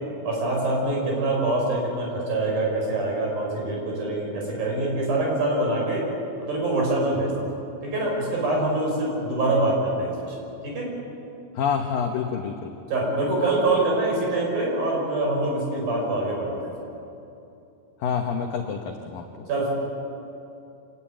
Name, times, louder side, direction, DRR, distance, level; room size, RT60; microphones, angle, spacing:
voice 1, 0.2-6.0 6.4-7.5 7.8-10.4 10.6-10.9 12.9-16.7 19.5-19.7, right 2 dB, 45° right, -1 dB, 7.2 m, -25 dB
voice 2, 11.5-12.7 18.0-19.5, left 6 dB, 75° left, 4 dB, 2.1 m, -27 dB
26.5 x 19.0 x 9.2 m, 2.8 s
omnidirectional pair, 5.9 m